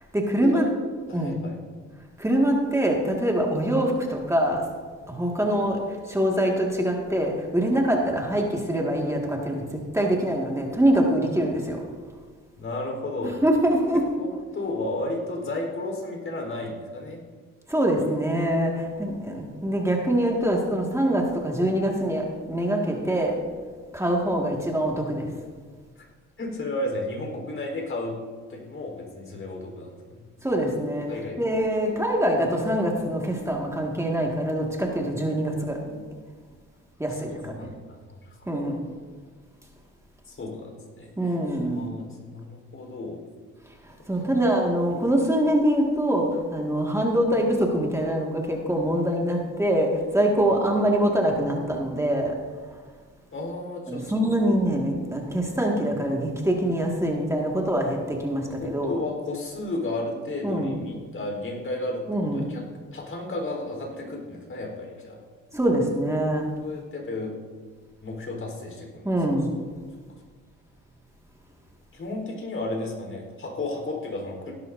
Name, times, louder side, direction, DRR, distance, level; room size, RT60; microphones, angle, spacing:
voice 1, 0.1-0.6 1.1-1.4 2.2-4.7 5.1-11.8 13.4-14.0 17.7-23.4 23.9-25.3 30.4-31.1 31.4-36.0 37.0-37.7 38.5-38.8 41.2-41.8 44.1-52.4 53.9-59.0 60.4-60.8 62.1-62.5 65.5-66.5 69.0-69.6, right 1 dB, 10° right, 0 dB, 1.9 m, -24 dB
voice 2, 1.1-1.6 12.6-13.4 14.2-17.2 26.0-26.1 26.4-28.2 28.5-30.2 31.1-31.4 37.1-37.7 38.3-38.5 40.3-41.4 41.7-43.2 50.3-50.4 53.3-54.3 58.6-62.6 62.9-65.2 66.6-67.3 68.0-69.1 71.9-74.5, left 2 dB, 40° left, 1 dB, 4.0 m, -33 dB
16.5 x 12.5 x 2.7 m, 1.5 s
cardioid pair, 90°, 30 cm